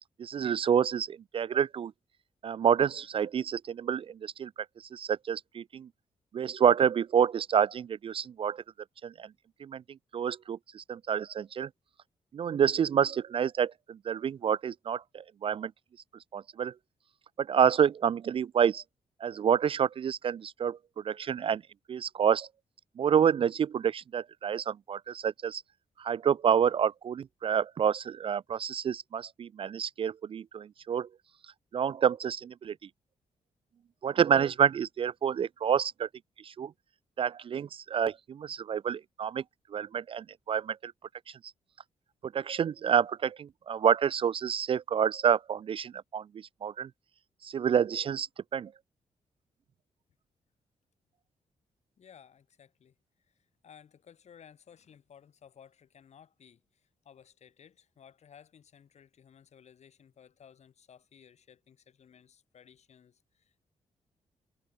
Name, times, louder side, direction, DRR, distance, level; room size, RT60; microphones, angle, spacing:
voice 1, 0.2-1.9 2.4-4.5 4.9-5.9 6.3-8.6 9.0-9.3 9.6-11.7 12.3-15.7 16.3-16.7 17.4-18.8 19.2-21.6 21.9-22.5 23.0-25.6 26.0-31.1 31.7-32.8 34.0-36.1 36.4-36.7 37.2-39.4 39.7-40.9 42.3-46.9 47.4-48.3 48.5-48.7, right 8 dB, 45° right, 0.3 m, -28 dB
voice 2, 52.0-53.0 53.3-63.7, left 8 dB, 65° left, 6.0 m, -57 dB
cardioid pair, 110°, 12 cm